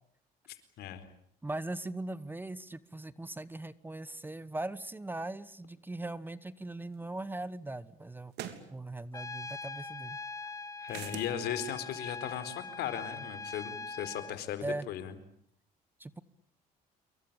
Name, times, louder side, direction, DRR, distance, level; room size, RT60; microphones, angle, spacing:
voice 1, 0.5-1.1 10.4-10.5 10.8-15.1, left 9 dB, 75° left, 11 dB, 4.4 m, -37 dB
voice 2, 1.4-8.3 8.7-10.2 14.6-14.9 16.0-16.2, right 2 dB, 10° right, 17 dB, 1.1 m, -39 dB
sound 1, 6.9-7.0 8.3-8.7 10.9-11.3, right 11 dB, 80° right, 3.4 m, -41 dB
Trumpet, 9.1-14.4, left 4 dB, 20° left, 1.9 m, -42 dB
28.0 x 23.5 x 8.9 m, 0.69 s
cardioid pair, 110°, 17 cm